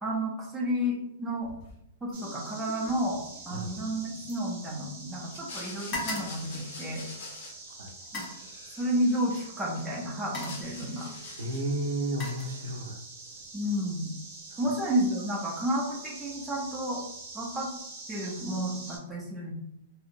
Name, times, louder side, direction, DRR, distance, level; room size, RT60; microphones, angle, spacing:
voice 1, 0.0-1.5 2.0-7.0 8.1-8.2 8.8-11.1 13.5-14.1 14.6-17.0 17.3-17.7 18.1-19.5, equal, 5° right, -4 dB, 0.5 m, -31 dB
sound 1, 1.4-1.8 2.1-5.2 5.5-7.4 8.0-8.5 9.5-9.7 10.1-10.8 11.6-13.0 13.4-13.8, left 2 dB, 35° left, 0.9 m, -41 dB
sound 2, 2.1-19.0, right 3 dB, 40° right, 0.9 m, -45 dB
sound 3, 5.2-9.8 10.2-11.8, left 3 dB, 60° left, 0.6 m, -45 dB
voice 2, 11.4-13.0 14.5-14.6, right 1 dB, 85° right, 3 dB, 0.5 m, -32 dB
2.7 x 2.0 x 2.5 m, 0.79 s
hypercardioid pair, 160°, 0 cm